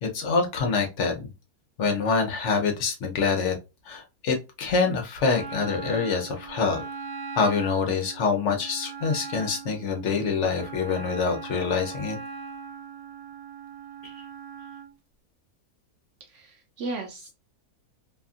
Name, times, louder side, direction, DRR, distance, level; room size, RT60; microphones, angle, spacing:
voice 1, 0.0-1.1 1.8-3.5 3.9-6.8 7.3-12.2, left 5 dB, 60° left, 0.9 m, -25 dB
Wind instrument woodwind instrument, 5.3-14.9, right 5 dB, 80° right, 1.2 m, -40 dB
voice 2, 16.3-17.3, right 3 dB, 65° right, 0.8 m, -36 dB
2.8 x 2.4 x 2.4 m
omnidirectional pair, 1.7 m